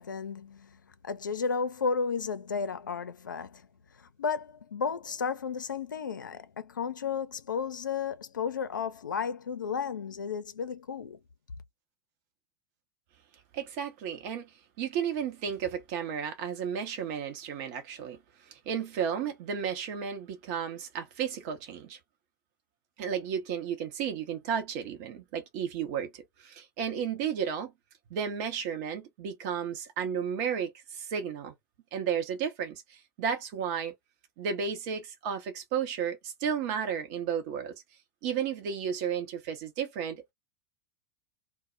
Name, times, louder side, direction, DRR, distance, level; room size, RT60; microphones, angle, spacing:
voice 1, 0.0-3.6 4.0-11.2, left 6 dB, 85° left, 0.4 m, -33 dB
voice 2, 13.5-22.0 23.0-27.7 28.1-31.5 31.9-33.9 34.4-37.7 38.2-40.3, right 7 dB, 50° right, 0.7 m, -33 dB
2.1 x 2.0 x 3.7 m
hypercardioid pair, 95°, 10 cm